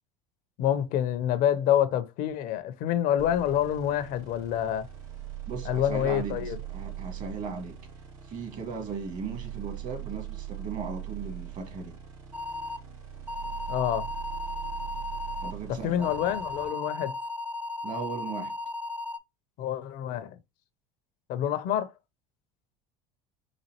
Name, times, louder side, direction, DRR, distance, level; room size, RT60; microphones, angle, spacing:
voice 1, 0.6-4.9 5.7-6.6 13.7-14.1 15.7-17.1 19.6-20.4 21.3-21.9, left 10 dB, 60° left, 0.6 m, -27 dB
sound 1, 3.2-16.7, right 13 dB, 80° right, 2.1 m, -41 dB
voice 2, 5.5-7.8 8.2-12.0 15.4-16.1 17.8-18.6, right 5 dB, 50° right, 1.5 m, -37 dB
sound 2, 12.3-12.8 13.3-15.5 16.0-19.2, left 2 dB, 10° right, 0.4 m, -35 dB
4.2 x 2.5 x 2.8 m
hypercardioid pair, 85°, 17 cm